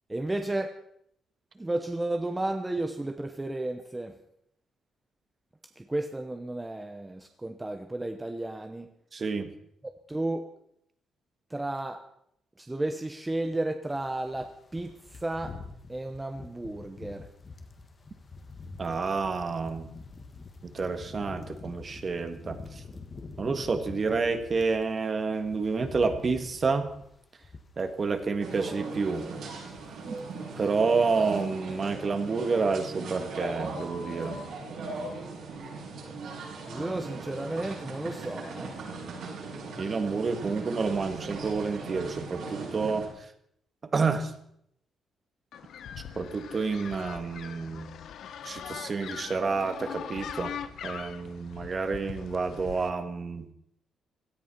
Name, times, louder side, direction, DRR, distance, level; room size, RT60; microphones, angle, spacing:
voice 1, 0.1-0.8 1.6-4.2 5.8-8.9 10.1-10.5 11.5-12.0 12.6-15.6 15.9-17.3 36.7-38.7, right 2 dB, 10° right, 6 dB, 0.9 m, -33 dB
voice 2, 9.1-9.5 18.8-19.9 20.6-22.8 23.4-26.9 27.8-29.3 30.1-30.2 30.6-34.4 36.7-36.8 39.8-43.3 43.9-44.3 46.1-48.0 48.4-50.5 50.8-53.5, right 4 dB, 30° right, 9 dB, 1.6 m, -29 dB
sound 1, 13.9-24.8 25.2-28.6 28.9-29.1 29.4-30.3 30.5-30.7, left 4 dB, 30° left, 1.7 m, -46 dB
sound 2, 28.4-43.1, right 3 dB, 70° right, 7.0 m, -39 dB
sound 3, 45.5-52.9, left 8 dB, 65° left, 1.1 m, -41 dB
17.0 x 13.5 x 5.8 m, 0.72 s
cardioid pair, 150°, 0 cm